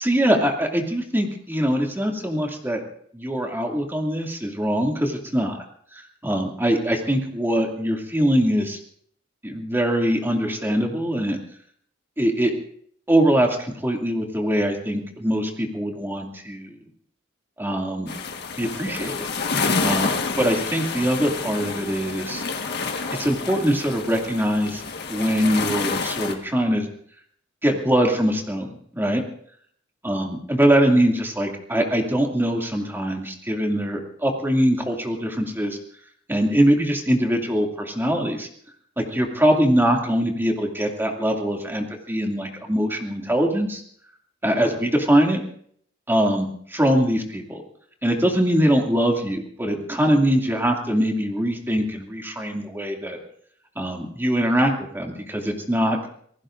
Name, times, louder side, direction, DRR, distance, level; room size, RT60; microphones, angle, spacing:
voice 1, 0.0-2.8 3.1-5.6 5.9-8.8 9.4-11.4 12.2-12.5 13.1-16.7 17.6-18.1 18.6-19.3 19.8-22.4 23.1-24.8 25.1-26.9 27.6-29.2 30.0-35.8 36.3-38.5 39.0-43.8 44.4-45.4 46.1-47.6 48.0-53.2 53.8-56.0, equal, 10° right, 1 dB, 2.4 m, -22 dB
sound 1, 18.1-26.3, left 4 dB, 55° left, 1.6 m, -28 dB
27.5 x 19.0 x 2.6 m, 0.62 s
head